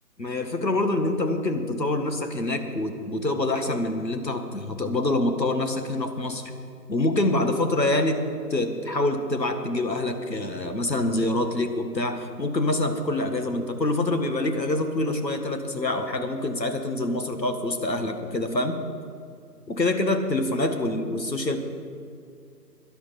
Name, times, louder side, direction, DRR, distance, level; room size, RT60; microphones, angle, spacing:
voice 1, 0.2-6.4 6.9-8.2 8.5-18.8 19.7-21.6, left 2 dB, 85° left, 6 dB, 1.8 m, -26 dB
12.0 x 11.0 x 6.0 m, 2.4 s
figure-of-eight pair, 150°, 49 cm